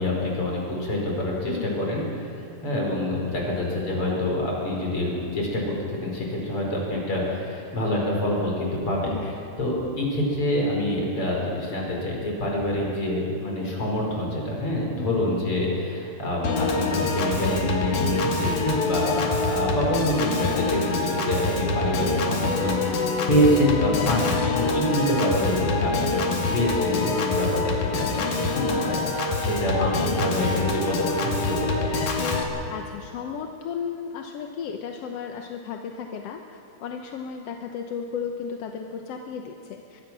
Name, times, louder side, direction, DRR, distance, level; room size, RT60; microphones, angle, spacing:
voice 1, 0.0-2.3 2.6-31.9, left 1 dB, 45° left, -2 dB, 5.9 m, -26 dB
voice 2, 1.5-1.8 9.0-9.3 15.0-15.1 21.9-22.3 32.7-40.0, left 7 dB, 65° left, 3 dB, 1.9 m, -34 dB
Piano / Organ, 16.4-32.4, left 3 dB, 85° left, 3.7 m, -25 dB
23.5 x 23.0 x 6.2 m, 2.7 s
omnidirectional pair, 3.4 m